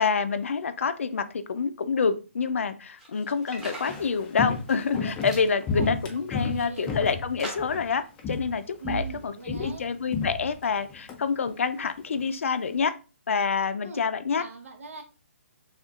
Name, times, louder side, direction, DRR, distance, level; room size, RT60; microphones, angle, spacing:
voice 1, 0.0-12.9 13.3-14.4, left 5 dB, 70° left, 11 dB, 0.5 m, -27 dB
sound 1, 3.0-4.1 4.6-5.0 5.3-5.5 6.1-6.9 7.4-7.9, right 1 dB, 5° right, 0.8 m, -41 dB
Walk footsteps, 3.6-7.9 8.2-8.6 8.8-11.2 11.5-11.6, left 4 dB, 10° left, 0.4 m, -32 dB
voice 2, 6.2-7.0 8.8-9.9 13.8-14.0 14.4-15.0, right 4 dB, 80° right, 4 dB, 1.2 m, -40 dB
6.4 x 2.4 x 2.4 m, 0.33 s
hypercardioid pair, 165°, 7 cm